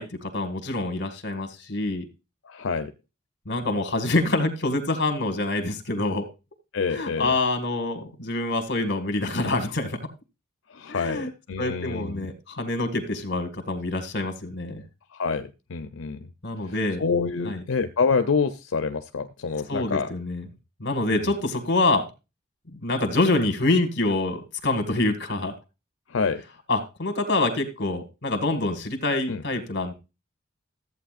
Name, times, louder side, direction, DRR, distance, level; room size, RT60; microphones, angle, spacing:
voice 1, 0.0-2.1 3.5-6.3 6.9-10.0 10.9-11.3 11.6-14.8 16.4-17.0 17.5-17.6 19.7-20.4 20.8-22.1 22.7-25.5 26.7-29.9, left 2 dB, 60° left, 7 dB, 1.9 m, -26 dB
voice 2, 2.4-2.9 6.7-7.3 10.7-12.3 15.1-16.2 16.6-20.1 21.1-21.4 26.1-26.4 29.3-29.4, left 5 dB, 85° left, 8 dB, 0.6 m, -27 dB
14.0 x 8.3 x 2.5 m, 0.27 s
head